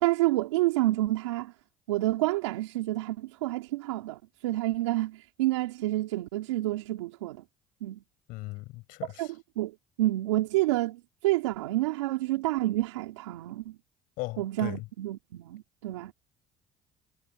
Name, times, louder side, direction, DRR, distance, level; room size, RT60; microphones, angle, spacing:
voice 1, 0.0-1.5 1.9-7.4 7.8-8.0 9.2-9.3 9.6-13.8 14.4-16.1, right 17 dB, 90° right, 2.9 m, -29 dB
voice 2, 8.3-9.3 14.2-14.9, left 21 dB, 75° left, 5.5 m, -38 dB
hypercardioid pair, 65°, 15 cm